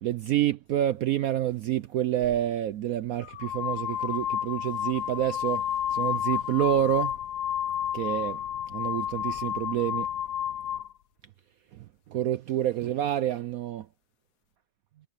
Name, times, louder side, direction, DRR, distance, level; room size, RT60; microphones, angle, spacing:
voice 1, 0.0-5.7 5.9-7.1 7.9-8.4 8.7-10.1 12.1-13.9, right 12 dB, 75° right, 0.8 m, -28 dB
sound 1, 2.2-2.4 3.2-10.9, left 10 dB, 65° left, 1.2 m, -31 dB
omnidirectional pair, 2.0 m